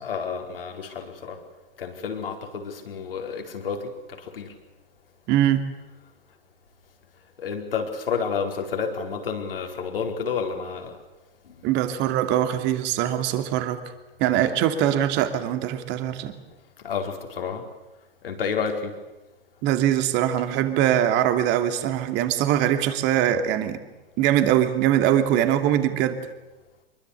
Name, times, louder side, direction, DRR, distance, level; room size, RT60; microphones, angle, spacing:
voice 1, 0.0-1.4 1.8-4.5 7.4-10.9 11.4-11.6 14.3-14.6 16.8-17.6 18.2-19.0, left 6 dB, 70° left, 3 dB, 4.7 m, -30 dB
voice 2, 5.3-5.6 11.6-13.8 14.2-16.3 19.6-23.8 24.2-26.2, right 11 dB, 35° right, 8 dB, 2.9 m, -22 dB
25.5 x 23.0 x 8.4 m, 1.1 s
figure-of-eight pair, 100°, 30 cm